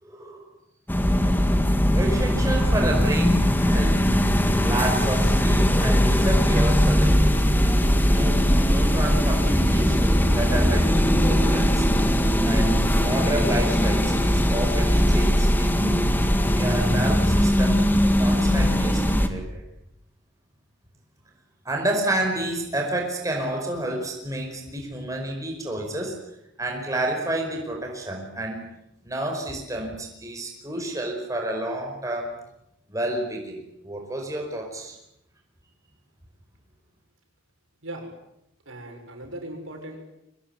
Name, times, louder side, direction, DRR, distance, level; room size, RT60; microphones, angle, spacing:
voice 1, 0.0-0.4 1.9-4.2 4.6-7.4 8.0-10.9 11.2-11.9 12.5-17.8 18.2-19.6 21.6-26.2 26.6-28.7 29.0-32.4 32.9-34.9, right 1 dB, 15° right, 1 dB, 5.2 m, -30 dB
highway traffic jam, 0.9-19.3, equal, 10° left, 1.9 m, -20 dB
voice 2, 38.6-40.1, right 1 dB, 75° right, 3 dB, 6.8 m, -38 dB
24.5 x 20.0 x 9.8 m, 0.83 s
head